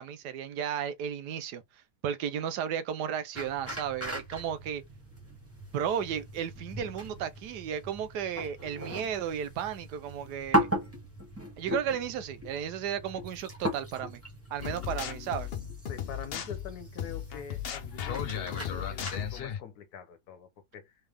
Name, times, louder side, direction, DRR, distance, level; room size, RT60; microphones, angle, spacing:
voice 1, 0.0-4.8 5.7-10.7 11.6-14.2 14.5-15.5, right 8 dB, 85° right, 1.3 m, -34 dB
sound 1, 3.3-19.4, right 1 dB, 10° right, 1.2 m, -37 dB
sound 2, 14.6-19.6, left 9 dB, 55° left, 0.6 m, -36 dB
voice 2, 15.9-21.0, left 7 dB, 75° left, 1.4 m, -45 dB
4.0 x 3.3 x 3.4 m
omnidirectional pair, 1.7 m